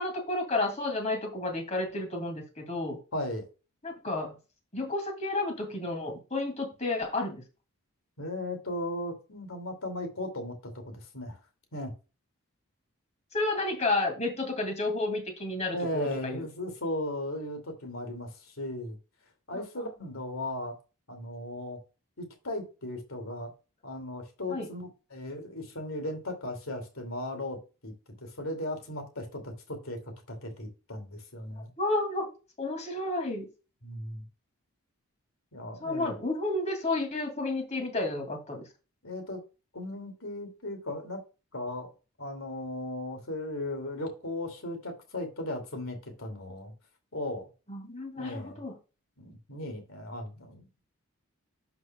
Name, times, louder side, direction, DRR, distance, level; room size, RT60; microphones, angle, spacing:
voice 1, 0.0-3.0 3.8-4.3 4.7-7.4 13.3-16.5 19.5-19.6 24.5-24.7 31.8-32.3 32.6-33.5 35.8-38.7 47.7-48.7, left 2 dB, 30° left, 3 dB, 2.4 m, -31 dB
voice 2, 3.1-3.4 8.2-11.4 11.7-11.9 15.7-19.0 19.5-20.7 21.1-21.8 22.2-23.5 23.8-30.0 30.3-31.7 33.8-34.2 35.5-36.1 39.0-39.4 39.7-41.2 41.5-41.9 42.2-46.7 47.1-47.5 48.2-48.6 49.2-50.7, left 1 dB, 75° left, 5 dB, 2.6 m, -37 dB
11.5 x 5.9 x 2.3 m, 0.31 s
head